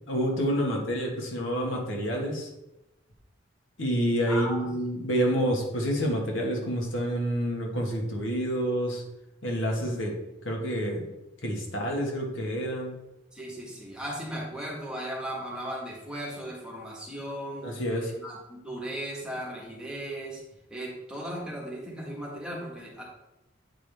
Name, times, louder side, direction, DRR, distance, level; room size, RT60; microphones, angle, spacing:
voice 1, 0.1-2.5 3.8-9.0 9.4-10.2 10.4-11.0 11.4-12.9 17.6-18.1, equal, 75° left, 0 dB, 1.6 m, -28 dB
voice 2, 4.3-4.7 13.3-17.7 18.2-20.4 20.7-23.0, equal, 5° right, -4 dB, 1.5 m, -36 dB
8.6 x 4.9 x 3.5 m, 0.93 s
head